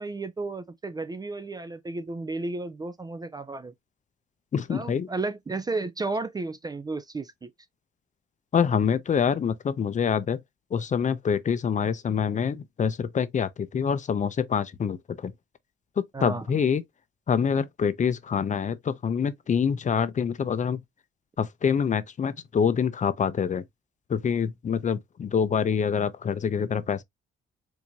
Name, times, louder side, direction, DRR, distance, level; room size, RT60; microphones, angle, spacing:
voice 1, 0.0-3.7 4.7-7.5 16.1-16.4, right 3 dB, 20° right, 0.4 m, -33 dB
voice 2, 4.5-5.1 8.5-10.4 10.7-15.3 16.0-16.8 17.3-20.8 21.4-23.6 24.1-27.0, left 7 dB, 40° left, 0.5 m, -26 dB
4.5 x 2.7 x 2.7 m
cardioid pair, 90°, 20 cm